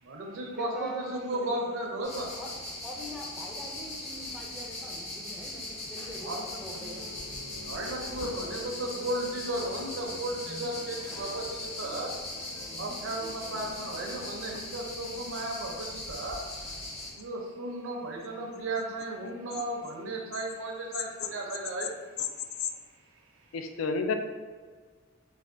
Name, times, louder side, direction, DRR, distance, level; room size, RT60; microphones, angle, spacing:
voice 1, 0.0-2.3 6.2-6.4 7.6-12.1 12.8-16.4 17.1-21.9, right 1 dB, 80° right, 0 dB, 0.5 m, -35 dB
voice 2, 0.6-1.6 2.4-2.5 2.8-7.0, equal, ahead, -2 dB, 0.4 m, -43 dB
sound 1, 2.0-17.1, left 2 dB, 35° left, 0.7 m, -40 dB
sound 2, 6.6-14.0, left 1 dB, 65° left, 1.1 m, -47 dB
voice 3, 23.5-24.1, left 4 dB, 90° left, 6 dB, 0.3 m, -30 dB
3.3 x 2.2 x 2.5 m, 1.5 s
head